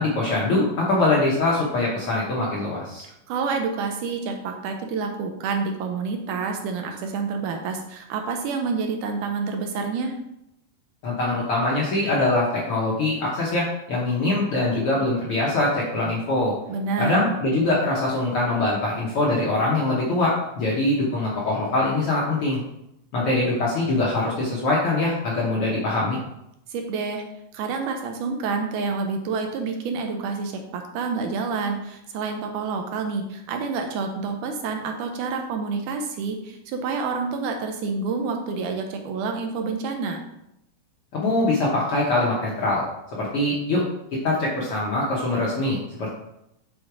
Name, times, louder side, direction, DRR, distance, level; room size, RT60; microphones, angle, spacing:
voice 1, 0.0-3.0 11.0-16.5 17.0-22.6 23.1-26.2 41.1-42.8 43.2-43.8 44.2-46.1, left 2 dB, 60° left, -5 dB, 1.5 m, -23 dB
voice 2, 3.0-10.1 16.7-17.4 26.7-27.2 27.5-40.2, right 4 dB, 75° right, 4 dB, 2.0 m, -28 dB
6.3 x 3.9 x 4.7 m, 0.82 s
omnidirectional pair, 3.8 m